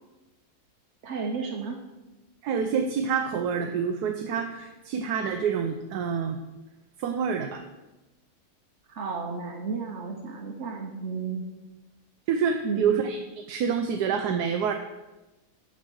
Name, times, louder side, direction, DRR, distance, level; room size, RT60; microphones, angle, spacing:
voice 1, 1.0-1.8 8.9-11.5 12.6-12.9, right 5 dB, 55° right, 1 dB, 1.1 m, -33 dB
voice 2, 2.4-6.4 7.0-7.6 12.3-14.7, right 6 dB, 85° right, 5 dB, 1.2 m, -27 dB
7.1 x 6.4 x 6.2 m, 1.1 s
omnidirectional pair, 1.7 m